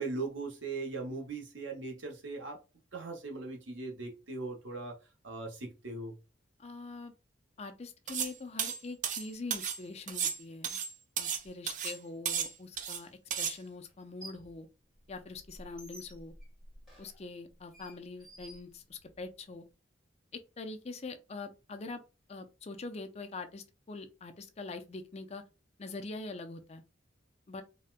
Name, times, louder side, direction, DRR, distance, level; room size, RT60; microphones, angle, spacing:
voice 1, 0.0-2.6 2.9-4.9 5.2-6.1, right 3 dB, 90° right, 1.0 m, -39 dB
voice 2, 6.6-7.1 7.6-10.8 11.2-14.7 15.1-16.3 17.0-19.6 20.3-22.0 22.3-25.4 25.8-26.8 27.5-27.6, left 3 dB, 35° left, 0.5 m, -44 dB
sound 1, 8.1-8.3 8.6-9.8 10.1-11.4 11.7-12.0 12.3-13.0 13.3-13.6, right 8 dB, 45° right, 0.4 m, -34 dB
sound 2, 12.7-12.8 13.9-14.6 14.9-19.3, right 1 dB, ahead, 1.3 m, -53 dB
4.1 x 2.2 x 2.4 m
head